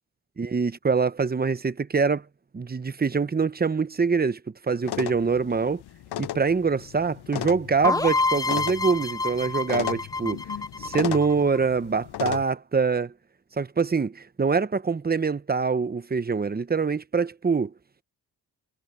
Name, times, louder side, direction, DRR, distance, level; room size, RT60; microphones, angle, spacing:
voice 1, 0.4-2.2 2.5-5.8 6.2-10.4 10.8-13.1 13.6-17.7, right 5 dB, 25° right, 0.9 m, -24 dB
sound 1, 4.8-12.4, left 12 dB, 70° left, 0.7 m, -35 dB
sound 2, 7.8-11.6, left 3 dB, 10° left, 0.4 m, -27 dB
cardioid pair, 90°, 40 cm